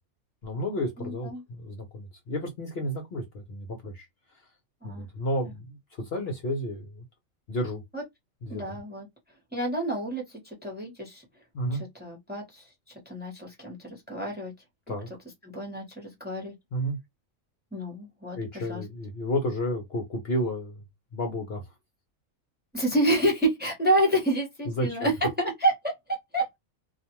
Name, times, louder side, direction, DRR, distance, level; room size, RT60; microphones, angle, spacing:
voice 1, 0.4-4.1 4.8-7.0 7.5-7.8 8.4-8.6 11.5-11.8 14.9-15.1 16.7-17.0 18.3-20.8 21.1-21.6 24.7-25.1, equal, 55° left, 0.9 m, -31 dB
voice 2, 1.0-1.4 4.8-5.0 7.9-8.0 8.5-9.1 9.5-11.2 11.7-12.6 13.1-14.5 14.9-15.0 15.4-16.5 17.7-18.8 22.7-26.6, right 1 dB, 10° right, 0.9 m, -28 dB
2.4 x 2.4 x 2.8 m
omnidirectional pair, 1.4 m